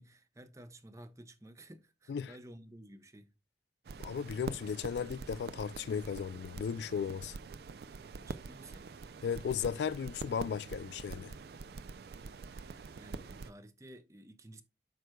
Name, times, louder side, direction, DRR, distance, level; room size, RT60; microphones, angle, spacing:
voice 1, 0.0-3.3 8.2-9.0 12.5-14.6, right 1 dB, 15° right, 0.6 m, -54 dB
sound 1, 3.9-13.5, right 4 dB, 65° right, 0.3 m, -45 dB
voice 2, 4.0-7.3 9.2-11.3, left 7 dB, 80° left, 0.3 m, -36 dB
9.1 x 6.3 x 2.2 m
head